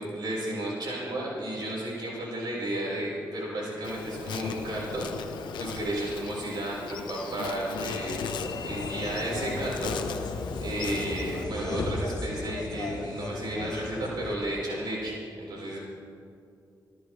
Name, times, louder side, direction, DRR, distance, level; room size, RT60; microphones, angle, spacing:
voice 1, 0.0-5.1 5.6-8.2 8.6-10.0 10.6-15.8, right 1 dB, 70° right, -4 dB, 4.8 m, -33 dB
Insect, 3.8-11.4, left 6 dB, 90° left, 0.9 m, -37 dB
sound 1, 7.8-14.3, left 3 dB, 60° left, 1.5 m, -36 dB
26.5 x 13.0 x 3.3 m, 2.6 s
supercardioid pair, 50°, 8 cm